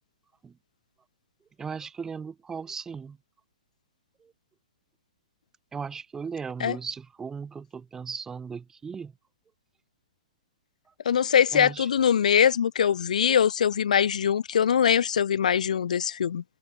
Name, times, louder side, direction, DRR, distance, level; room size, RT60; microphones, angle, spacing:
voice 1, 1.6-3.2 5.7-9.1 11.5-11.9, right 6 dB, 10° right, 1.2 m, -37 dB
voice 2, 11.0-16.4, left 8 dB, 75° left, 1.4 m, -22 dB
hypercardioid pair, 135°, 4 cm